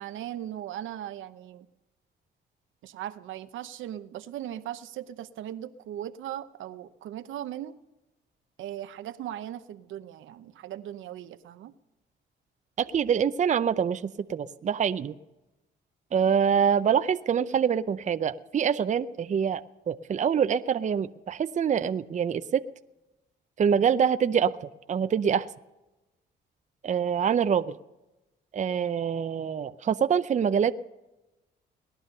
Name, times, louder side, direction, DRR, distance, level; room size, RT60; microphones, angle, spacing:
voice 1, 0.0-1.7 2.8-7.8 8.6-11.7, right 11 dB, 80° right, 11 dB, 0.8 m, -38 dB
voice 2, 12.8-15.1 16.1-19.6 19.9-22.6 23.6-25.5 26.8-27.8 28.5-30.8, right 7 dB, 40° right, 11 dB, 0.6 m, -25 dB
19.0 x 11.5 x 6.7 m, 1.0 s
cardioid pair, 90°, 20 cm